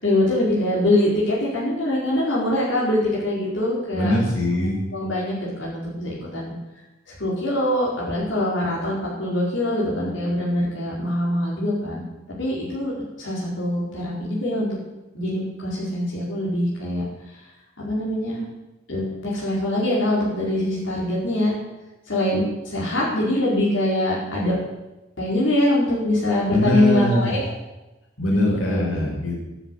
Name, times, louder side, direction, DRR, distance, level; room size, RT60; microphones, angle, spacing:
voice 1, 0.0-4.2 4.9-5.3 5.6-6.5 7.2-12.0 12.4-12.9 13.2-14.7 15.1-17.0 17.8-18.4 18.9-21.5 22.1-24.6 25.2-27.4 28.3-28.8, left 1 dB, 65° left, -6 dB, 4.8 m, -23 dB
voice 2, 3.9-4.8 26.5-27.3 28.2-29.4, equal, 85° left, -2 dB, 5.4 m, -22 dB
11.5 x 10.5 x 8.3 m, 1.0 s
head